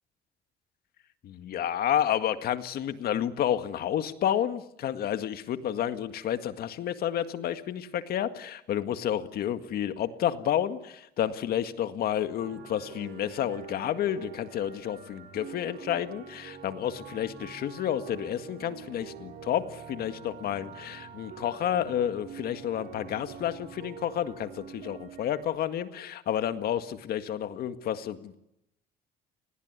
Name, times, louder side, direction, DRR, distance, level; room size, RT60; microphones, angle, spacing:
voice 1, 1.2-28.4, left 10 dB, 65° left, 10 dB, 1.9 m, -30 dB
sound 1, 12.4-25.4, right 6 dB, 75° right, 6.0 m, -46 dB
28.5 x 20.5 x 9.7 m, 0.85 s
cardioid pair, 110°, 17 cm